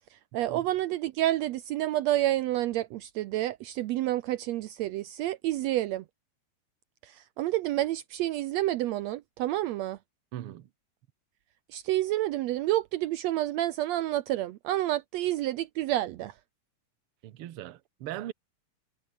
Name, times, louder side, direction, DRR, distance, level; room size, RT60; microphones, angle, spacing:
voice 1, 0.1-6.0 7.0-10.0 11.7-16.3, right 14 dB, 90° right, 1.5 m, -29 dB
voice 2, 10.3-10.7 17.2-18.3, right 13 dB, 70° right, 1.3 m, -39 dB
omnidirectional pair, 4.0 m